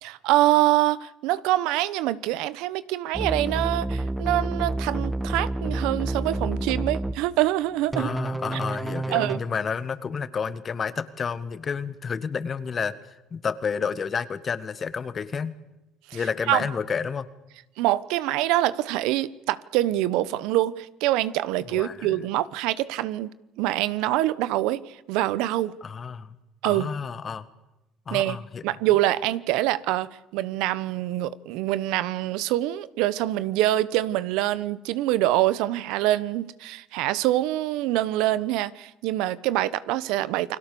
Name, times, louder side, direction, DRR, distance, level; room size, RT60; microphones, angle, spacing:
voice 1, 0.0-8.1 9.1-9.4 16.1-16.2 16.5-16.6 17.8-23.3 23.6-25.8 26.6-26.9 28.1-28.4 28.6-40.6, right 15 dB, 80° right, 1.0 m, -25 dB
sound 1, 3.1-7.1 7.9-9.4, right 2 dB, 10° right, 1.6 m, -29 dB
voice 2, 8.0-15.6 16.1-17.3 21.7-22.2 25.8-26.3 26.6-27.5 28.1-28.6, left 6 dB, 35° left, 1.8 m, -30 dB
30.0 x 21.0 x 7.0 m
supercardioid pair, 95°, 0 cm